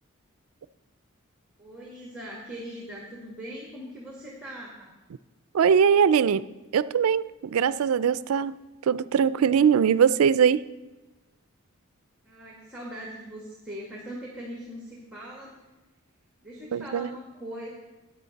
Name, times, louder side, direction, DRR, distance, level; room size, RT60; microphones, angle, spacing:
voice 1, 1.6-4.9 12.2-15.5 16.4-17.8, equal, 5° right, 1.6 m, -40 dB
voice 2, 5.5-6.5 6.7-8.5 8.8-10.6 16.7-17.1, right 7 dB, 75° right, 0.4 m, -21 dB
14.0 x 9.7 x 4.0 m
head